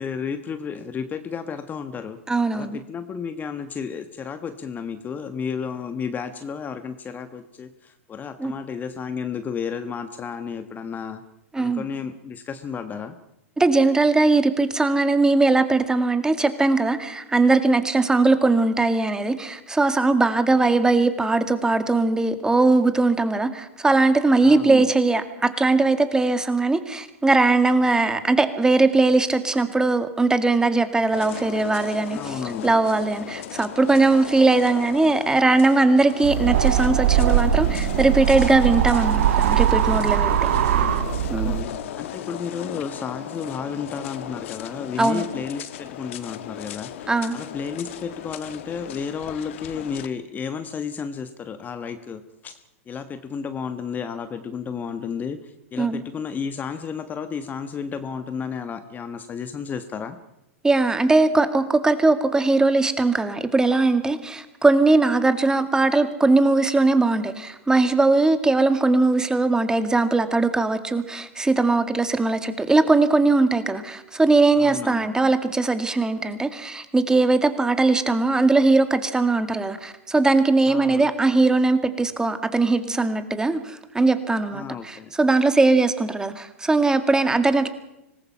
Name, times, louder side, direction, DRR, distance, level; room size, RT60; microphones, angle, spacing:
voice 1, 0.0-2.2 2.5-11.2 11.5-13.1 24.4-24.9 32.1-32.7 40.4-40.9 41.4-60.2 74.6-75.1 80.7-81.1 84.5-85.1, left 6 dB, 25° left, 10 dB, 1.4 m, -32 dB
voice 2, 2.3-2.8 8.4-8.5 11.5-11.8 13.6-32.3 32.6-40.5 41.3-41.6 45.0-45.2 47.1-47.4 55.8-56.0 60.6-87.7, right 3 dB, 10° right, 10 dB, 2.1 m, -20 dB
sound 1, 31.1-50.1, left 11 dB, 65° left, 1.5 m, -36 dB
sound 2, 36.2-41.6, right 10 dB, 65° right, 1.4 m, -21 dB
25.5 x 19.5 x 5.7 m, 0.86 s
hypercardioid pair, 110°, 7 cm